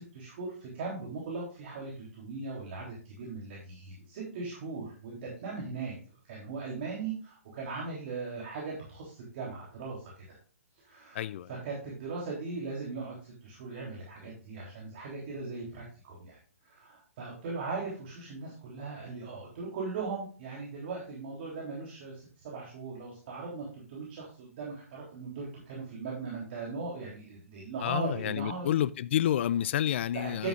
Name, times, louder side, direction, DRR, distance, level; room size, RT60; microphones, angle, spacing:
voice 1, 0.0-6.0 6.2-10.4 10.8-28.7 30.1-30.5, right 4 dB, 45° right, 3.6 m, -39 dB
voice 2, 11.1-11.5 27.8-30.5, left 11 dB, 50° left, 0.4 m, -29 dB
11.0 x 8.7 x 2.5 m
hypercardioid pair, 130°, 8 cm